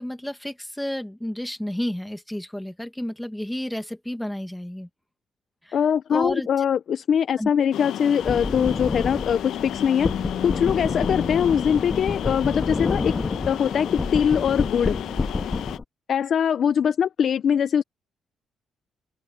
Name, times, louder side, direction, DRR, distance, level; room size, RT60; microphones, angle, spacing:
voice 1, 0.0-4.9 5.6-5.8 6.1-6.7 7.4-7.5, left 1 dB, 5° left, 1.9 m, -31 dB
voice 2, 5.7-13.1 13.4-14.9 16.1-17.8, left 8 dB, 60° left, 0.6 m, -22 dB
sound 1, 7.7-15.8, left 11 dB, 80° left, 1.0 m, -32 dB
sound 2, 8.2-15.8, left 3 dB, 25° left, 1.6 m, -29 dB
open air
cardioid pair, 90°, 0 cm